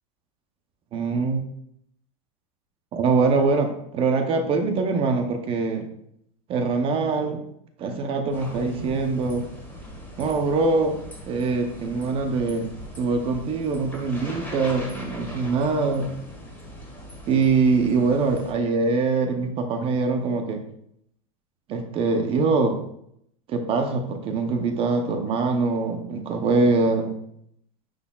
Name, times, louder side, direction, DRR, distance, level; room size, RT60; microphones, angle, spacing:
voice 1, 0.9-1.4 2.9-5.9 6.5-7.4 7.8-9.4 10.2-11.0 11.3-12.7 13.0-16.1 17.3-20.6 21.7-22.8 23.5-27.1, right 4 dB, 30° right, 5 dB, 0.8 m, -23 dB
sound 1, 8.3-18.5, equal, 10° left, 1.7 m, -40 dB
9.4 x 4.2 x 2.4 m, 0.70 s
supercardioid pair, 150°, 18 cm